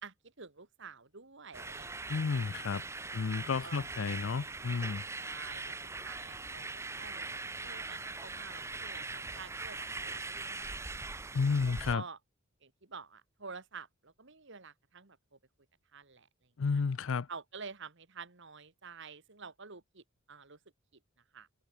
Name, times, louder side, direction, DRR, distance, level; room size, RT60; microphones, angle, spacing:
voice 1, 0.0-2.4 3.6-3.8 5.2-11.2 11.6-12.2 12.6-15.4 15.9-16.3 16.7-16.8 17.3-20.6 21.3-21.5, right 5 dB, 60° right, 2.1 m, -49 dB
sound 1, 1.5-12.0, right 3 dB, 15° right, 0.6 m, -41 dB
voice 2, 2.1-2.8 3.1-5.0 11.3-12.0 16.6-17.3, left 5 dB, 65° left, 0.5 m, -32 dB
head